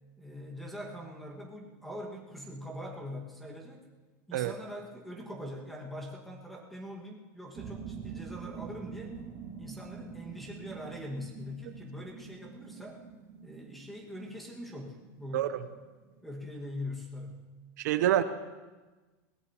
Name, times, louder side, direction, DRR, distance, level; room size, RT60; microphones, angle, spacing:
voice 1, 0.2-3.9 4.3-9.2 9.6-13.0 13.4-15.5 16.2-17.4, left 1 dB, ahead, 0 dB, 1.7 m, -42 dB
sound 1, 7.5-16.5, right 6 dB, 35° right, 2.0 m, -46 dB
voice 2, 17.8-18.2, right 12 dB, 80° right, 11 dB, 0.8 m, -26 dB
21.0 x 18.0 x 2.9 m, 1.2 s
supercardioid pair, 165°, 9 cm